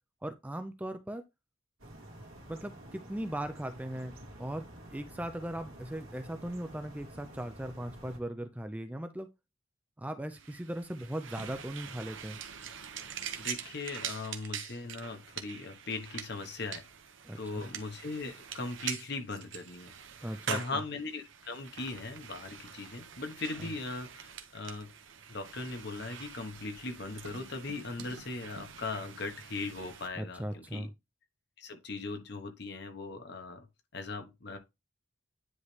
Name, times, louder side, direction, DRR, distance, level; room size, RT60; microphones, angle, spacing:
voice 1, 0.2-1.2 2.5-4.6 4.9-9.3 10.0-12.4 17.2-17.7 20.2-20.8 30.2-30.9, right 1 dB, 5° right, 0.4 m, -38 dB
sound 1, 1.8-8.2, right 1 dB, 85° right, 1.7 m, -50 dB
sound 2, 10.3-30.1, right 8 dB, 70° right, 0.8 m, -44 dB
voice 2, 13.4-16.8 17.3-19.9 20.2-24.9 25.3-30.9 31.6-33.7 33.9-34.6, left 3 dB, 55° left, 1.1 m, -39 dB
9.6 x 3.2 x 3.2 m
head